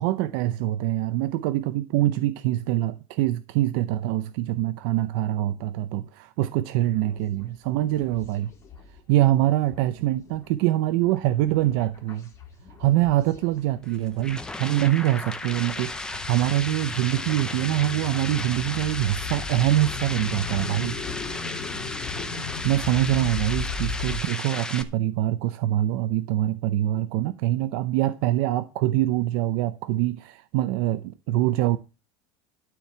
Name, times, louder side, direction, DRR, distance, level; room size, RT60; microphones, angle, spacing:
voice 1, 0.0-8.5 9.1-12.3 12.8-21.0 22.6-31.8, right 14 dB, 50° right, 0.6 m, -24 dB
sound 1, 7.0-7.4 7.8-9.0 9.3-9.4 9.6-14.4 14.9-15.0 15.4-24.2, left 4 dB, 20° left, 2.0 m, -37 dB
sound 2, 13.8-24.8, left 2 dB, 5° left, 0.6 m, -34 dB
sound 3, 16.1-22.0, left 10 dB, 55° left, 1.2 m, -43 dB
12.5 x 4.6 x 8.5 m
cardioid pair, 180°, 14 cm